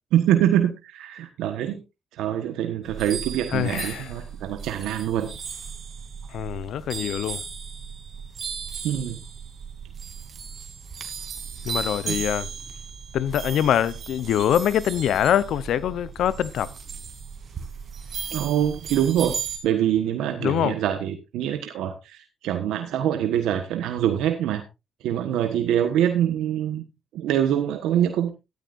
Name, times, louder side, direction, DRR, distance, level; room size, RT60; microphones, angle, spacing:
voice 1, 0.1-1.8 2.1-5.3 8.8-9.2 12.1-12.2 18.3-19.4 19.6-24.6 25.0-26.8 27.1-28.3, right 10 dB, 90° right, 1.3 m, -24 dB
sound 1, 2.8-19.6, right 6 dB, 55° right, 3.0 m, -36 dB
voice 2, 3.5-4.1 6.3-7.4 11.6-12.5 13.1-16.7 20.4-20.8, left 10 dB, 75° left, 0.8 m, -24 dB
13.0 x 13.0 x 2.6 m
cardioid pair, 90°, 0 cm